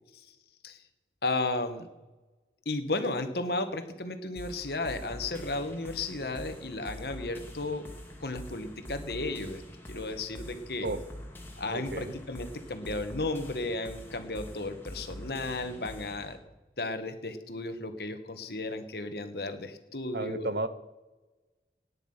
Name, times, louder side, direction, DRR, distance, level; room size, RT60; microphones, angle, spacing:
voice 1, 1.2-1.9 2.6-7.9 8.2-10.9 11.6-16.4 16.8-20.5, left 2 dB, 65° left, 8 dB, 1.6 m, -34 dB
sound 1, 4.4-16.4, left 1 dB, 10° left, 2.2 m, -45 dB
voice 2, 11.7-12.1 20.1-20.7, right 2 dB, 65° right, 12 dB, 1.0 m, -33 dB
18.0 x 9.9 x 5.7 m, 1.1 s
head